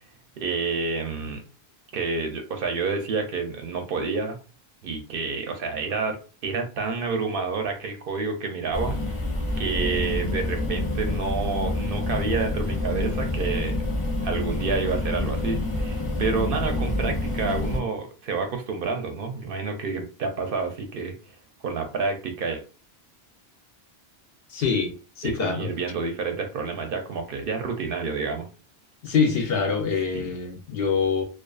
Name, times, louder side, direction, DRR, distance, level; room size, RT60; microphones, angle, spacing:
voice 1, 0.4-1.4 1.9-4.4 4.8-6.2 6.4-9.0 9.6-13.7 14.2-21.1 21.6-22.6 25.2-28.5 30.1-30.3, right 4 dB, 65° right, 0.7 m, -29 dB
sound 1, 8.7-17.8, left 2 dB, 35° left, 0.7 m, -27 dB
voice 2, 24.5-25.7 29.0-31.2, left 5 dB, 70° left, 0.8 m, -25 dB
2.4 x 2.3 x 2.3 m
omnidirectional pair, 1.1 m